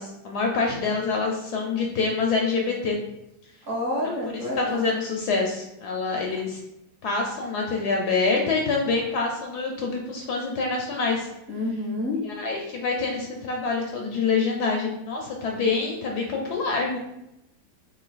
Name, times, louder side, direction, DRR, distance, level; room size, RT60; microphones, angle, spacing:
voice 1, 0.0-3.0 4.0-6.6 7.0-11.3 12.2-17.0, left 4 dB, 70° left, 0 dB, 1.1 m, -26 dB
voice 2, 3.7-4.8 11.5-12.2, left 1 dB, 45° right, -5 dB, 1.5 m, -28 dB
3.8 x 2.7 x 4.0 m, 0.86 s
omnidirectional pair, 2.0 m